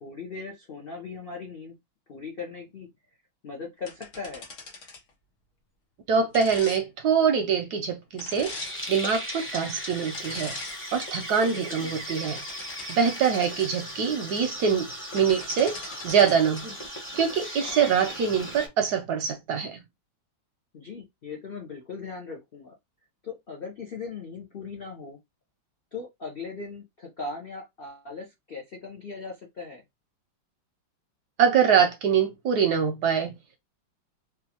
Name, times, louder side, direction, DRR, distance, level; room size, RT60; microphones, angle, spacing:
voice 1, 0.0-1.8 2.1-2.9 3.4-4.5 11.5-11.9 20.7-22.8 23.2-25.2 25.9-29.8, left 4 dB, 75° left, 0.5 m, -39 dB
sound 1, 3.9-5.1 6.3-6.8 8.2-8.8 10.1-10.8 11.3-11.5 12.1-13.7 14.9-15.0 15.2-16.6, left 4 dB, 50° left, 1.0 m, -42 dB
voice 2, 6.1-8.5 8.9-10.6 10.9-12.4 12.9-14.9 15.1-15.8 16.0-16.7 17.2-19.8 31.4-33.3, right 7 dB, 70° right, 1.0 m, -24 dB
sound 2, 8.4-18.7, equal, 10° left, 0.6 m, -37 dB
3.6 x 2.4 x 2.8 m
omnidirectional pair, 2.1 m